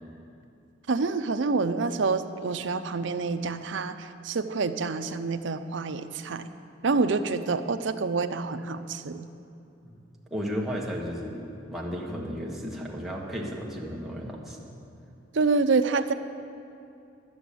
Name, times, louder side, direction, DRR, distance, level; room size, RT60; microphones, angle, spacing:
voice 1, 0.9-6.5 6.8-9.3 15.3-16.1, right 4 dB, 65° right, 10 dB, 0.5 m, -27 dB
voice 2, 10.3-14.7, equal, ahead, -4 dB, 1.4 m, -34 dB
12.0 x 7.0 x 8.4 m, 2.6 s
head